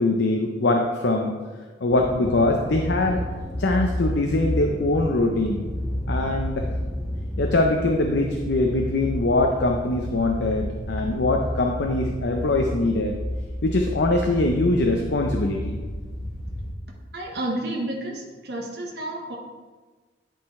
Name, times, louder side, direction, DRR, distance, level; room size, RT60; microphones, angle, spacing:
voice 1, 0.0-1.3 1.8-3.2 3.6-5.6 6.1-6.7 7.4-13.2 13.6-15.8, left 2 dB, 70° left, 2 dB, 0.6 m, -22 dB
sound 1, 1.9-16.7, left 1 dB, ahead, 1.0 m, -31 dB
voice 2, 17.1-19.4, right 1 dB, 60° right, -1 dB, 1.0 m, -30 dB
10.0 x 3.9 x 4.2 m, 1.3 s
head